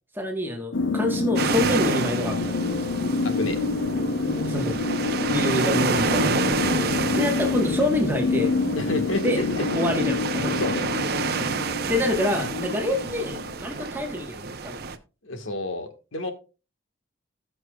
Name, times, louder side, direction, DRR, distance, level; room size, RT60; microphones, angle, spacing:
voice 1, 0.1-2.6 4.3-4.8 5.3-6.5 7.1-8.5 9.2-9.4 9.7-10.6 11.3-14.9, left 1 dB, 10° right, 2 dB, 1.3 m, -27 dB
sound 1, 0.7-13.6, left 3 dB, 70° left, 0.7 m, -27 dB
sound 2, 1.4-15.0, right 5 dB, 50° right, 0.7 m, -29 dB
voice 2, 3.2-3.6 8.8-9.6 10.5-10.9 15.2-16.3, left 1 dB, 85° left, 7 dB, 1.6 m, -30 dB
18.0 x 6.2 x 2.3 m, 0.32 s
head